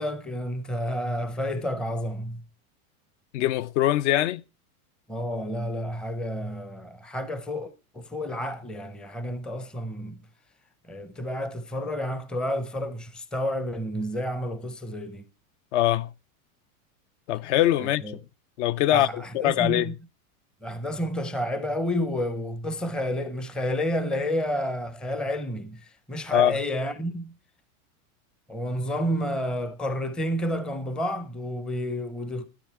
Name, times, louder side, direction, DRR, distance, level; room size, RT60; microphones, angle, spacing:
voice 1, 0.0-2.4 5.1-10.2 10.9-15.2 17.8-18.2 18.9-19.9 20.6-27.3 28.5-32.5, equal, ahead, 0.5 m, -30 dB
voice 2, 3.3-4.4 15.7-16.1 17.3-18.0 18.6-19.9 26.3-26.6, left 13 dB, 55° left, 0.6 m, -23 dB
13.0 x 10.5 x 4.4 m
supercardioid pair, 145°, 43 cm